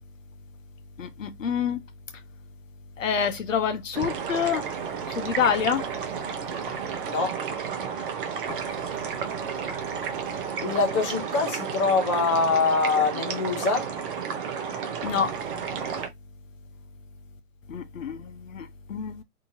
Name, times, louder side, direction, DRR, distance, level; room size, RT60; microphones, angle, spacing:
voice 1, 1.0-1.8 3.0-4.6 5.1-5.8 8.5-8.6 15.0-15.3 17.7-19.2, left 7 dB, 60° left, 0.7 m, -27 dB
sound 1, 3.9-16.1, right 7 dB, 35° right, 0.7 m, -32 dB
voice 2, 7.1-7.4 10.6-14.0, left 4 dB, 20° left, 0.6 m, -24 dB
2.8 x 2.6 x 2.6 m
figure-of-eight pair, 120°, 44 cm